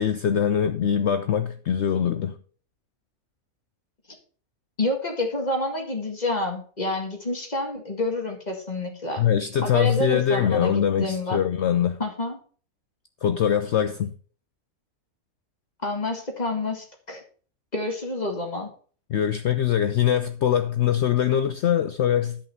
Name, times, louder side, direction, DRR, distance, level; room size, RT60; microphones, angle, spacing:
voice 1, 0.0-2.4 9.2-12.0 13.2-14.1 19.1-22.4, left 9 dB, 65° left, 0.7 m, -23 dB
voice 2, 4.8-9.2 9.6-11.4 12.0-12.4 15.8-17.2 17.7-18.7, left 2 dB, 30° left, 1.9 m, -28 dB
10.5 x 5.6 x 5.4 m
omnidirectional pair, 1.6 m